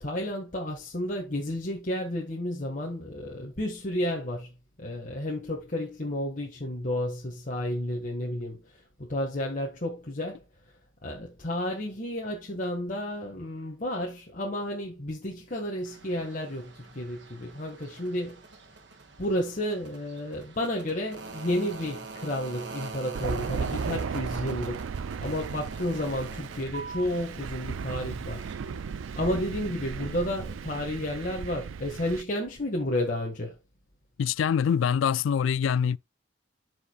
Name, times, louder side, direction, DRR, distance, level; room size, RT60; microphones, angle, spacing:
voice 1, 0.0-4.5 4.8-8.6 9.0-10.4 11.0-18.4 19.2-24.9 25.2-28.5 29.2-33.5, left 1 dB, 40° left, 1.6 m, -31 dB
sound 1, 15.9-30.6, right 4 dB, 60° right, 1.8 m, -45 dB
Thunder, 23.1-32.2, right 6 dB, 85° right, 0.4 m, -35 dB
voice 2, 34.2-36.0, left 7 dB, 80° left, 0.3 m, -24 dB
13.0 x 5.0 x 2.3 m
head